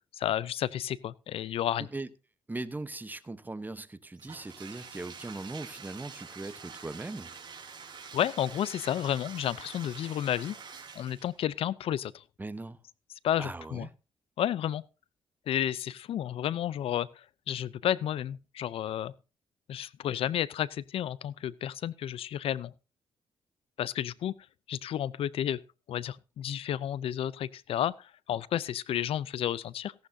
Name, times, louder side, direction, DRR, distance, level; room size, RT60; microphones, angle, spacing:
voice 1, 0.1-1.9 8.1-10.6 11.0-12.2 13.2-13.9 14.4-14.8 15.5-19.1 19.7-22.7 23.8-24.4 24.7-25.6 25.9-29.9, left 11 dB, 75° left, 0.5 m, -31 dB
voice 2, 1.8-2.1 2.5-7.3 12.4-12.8 13.4-13.9, right 2 dB, 20° right, 1.0 m, -39 dB
Bathtub (filling or washing), 4.2-11.4, right 5 dB, 50° right, 4.1 m, -46 dB
17.0 x 11.5 x 2.7 m
cardioid pair, 80°, 10 cm